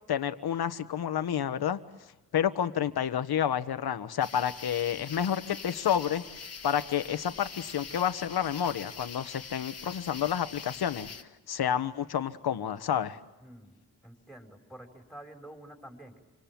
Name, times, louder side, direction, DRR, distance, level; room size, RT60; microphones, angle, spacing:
voice 1, 0.1-1.8 2.3-6.2 6.6-11.1 11.5-13.2, left 9 dB, 80° left, 10 dB, 1.4 m, -29 dB
sound 1, 4.2-11.2, left 5 dB, 40° left, 1.8 m, -44 dB
voice 2, 13.4-16.2, right 1 dB, ahead, 3 dB, 5.7 m, -49 dB
29.0 x 25.5 x 7.7 m, 1.1 s
wide cardioid pair, 105°, 38 cm